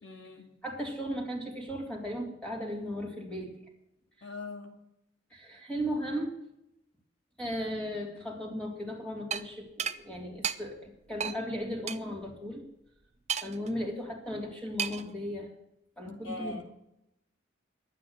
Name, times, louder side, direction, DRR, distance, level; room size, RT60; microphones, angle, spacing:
voice 1, 0.0-0.6 4.2-4.7 16.1-16.6, left 2 dB, 75° left, 3 dB, 2.4 m, -41 dB
voice 2, 0.6-3.5 5.3-6.4 7.4-12.6 13.4-15.5 16.0-16.6, equal, 5° left, 0 dB, 3.3 m, -36 dB
sound 1, 9.3-9.4 9.8-10.0 10.4-10.6 11.2-11.4 11.9-12.0 13.3-13.7 14.8-15.1, right 7 dB, 35° right, 0.7 m, -32 dB
11.5 x 9.3 x 8.8 m, 0.82 s
head